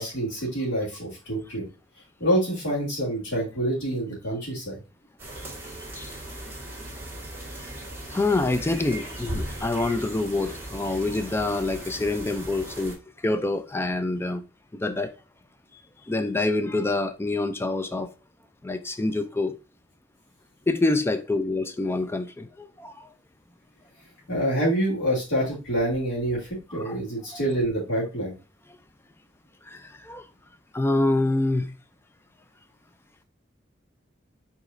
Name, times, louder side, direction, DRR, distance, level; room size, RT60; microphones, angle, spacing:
voice 1, 0.0-1.6 2.2-4.8 24.3-28.3, right 1 dB, 75° left, 2.6 m, -26 dB
sound 1, 5.2-13.0, right 1 dB, 10° right, 1.8 m, -38 dB
voice 2, 8.1-13.0 13.2-14.4 14.7-15.1 16.1-18.1 18.6-19.5 20.7-23.1 26.7-27.0 27.3-27.4 29.7-30.2 30.7-31.7, left 2 dB, 15° left, 0.4 m, -26 dB
4.9 x 4.0 x 2.6 m
head